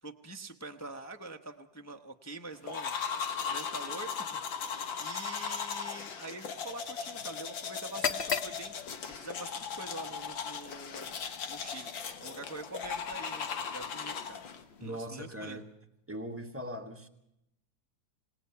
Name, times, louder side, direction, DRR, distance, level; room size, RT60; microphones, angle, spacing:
voice 1, 0.0-2.9 3.5-4.4 4.7-11.2 11.5-14.4 14.8-15.6, right 2 dB, 15° left, 5 dB, 0.6 m, -45 dB
sound 1, 2.7-14.6, left 6 dB, 80° left, 2.2 m, -38 dB
sound 2, 7.8-15.7, left 6 dB, 40° left, 1.1 m, -41 dB
voice 2, 14.8-15.7 16.1-17.1, equal, 10° right, 5 dB, 1.5 m, -40 dB
27.5 x 19.0 x 5.8 m, 0.79 s
omnidirectional pair, 2.1 m